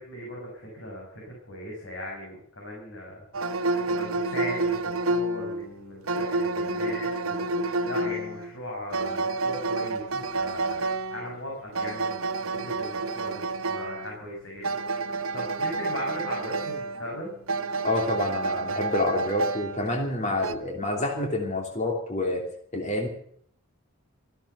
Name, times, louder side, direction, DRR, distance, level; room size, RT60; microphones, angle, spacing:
voice 1, 0.0-4.8 5.1-17.3, left 1 dB, 65° left, -2 dB, 6.1 m, -39 dB
sound 1, 3.3-20.5, right 3 dB, 85° right, 1.1 m, -30 dB
voice 2, 17.8-22.4 22.7-23.1, left 2 dB, 35° left, 1 dB, 2.9 m, -28 dB
15.0 x 12.5 x 6.7 m, 0.64 s
head